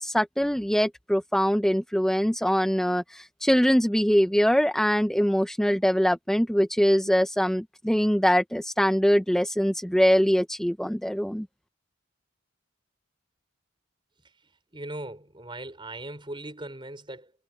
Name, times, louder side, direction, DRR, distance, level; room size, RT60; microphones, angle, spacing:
voice 1, 0.0-11.5, equal, ahead, 0.5 m, -23 dB
voice 2, 14.7-17.3, right 1 dB, 25° right, 5.4 m, -39 dB
head